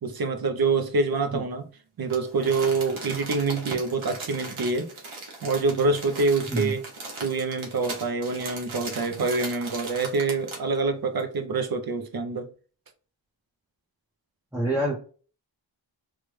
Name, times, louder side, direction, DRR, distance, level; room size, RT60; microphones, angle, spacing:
voice 1, 0.0-1.7 2.0-4.9 5.4-6.8 7.2-12.5, right 3 dB, 50° right, 0.5 m, -26 dB
Crumpling crinkling, 2.1-10.8 11.2-11.3, right 3 dB, 85° right, 1.0 m, -38 dB
voice 2, 14.5-15.0, right 1 dB, 5° right, 0.6 m, -26 dB
3.3 x 2.1 x 3.1 m
wide cardioid pair, 75°, 47 cm